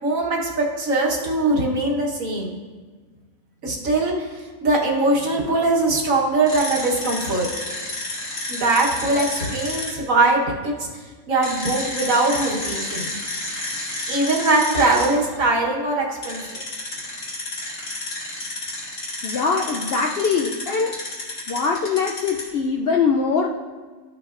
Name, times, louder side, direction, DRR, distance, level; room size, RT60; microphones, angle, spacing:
voice 1, 0.0-2.5 3.6-7.5 8.5-10.9 11.3-13.2 14.1-16.6, right 2 dB, 70° right, -2 dB, 1.6 m, -21 dB
sound 1, 6.5-9.9 11.4-15.1 16.2-22.5, left 2 dB, 85° left, 2.5 m, -30 dB
voice 2, 19.2-20.9 21.5-23.6, left 5 dB, 65° left, 0 dB, 0.6 m, -22 dB
13.0 x 5.7 x 2.5 m, 1.4 s
omnidirectional pair, 1.5 m